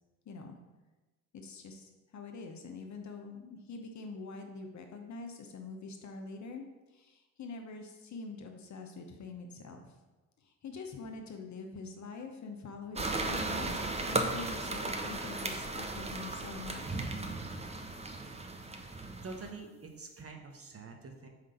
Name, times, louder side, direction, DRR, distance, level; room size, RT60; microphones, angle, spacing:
voice 1, 0.3-0.6 1.3-6.6 6.9-9.9 10.4-17.1, left 3 dB, 40° left, 4 dB, 0.9 m, -45 dB
sound 1, 13.0-19.5, right 2 dB, 15° right, 0.7 m, -36 dB
voice 2, 19.2-21.3, right 3 dB, 35° right, 3 dB, 1.1 m, -46 dB
4.8 x 3.7 x 5.6 m, 1.1 s
hypercardioid pair, 50°, 42 cm